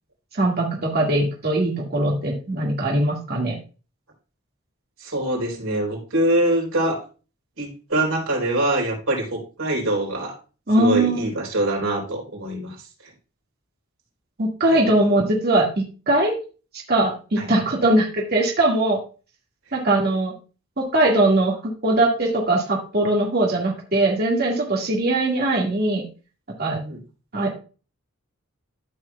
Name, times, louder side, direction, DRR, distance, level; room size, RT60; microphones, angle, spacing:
voice 1, 0.3-3.6 10.7-11.2 14.4-15.7 16.1-16.3 16.9-19.0 19.7-20.3 20.8-21.5 21.8-26.0 26.6-26.8 27.3-27.5, right 2 dB, 45° right, -2 dB, 1.9 m, -20 dB
voice 2, 5.0-7.0 7.6-10.4 10.8-12.8 14.7-14.8 17.4-17.5 26.7-27.0, right 1 dB, 85° right, -1 dB, 3.9 m, -24 dB
13.0 x 6.3 x 2.3 m, 0.34 s
head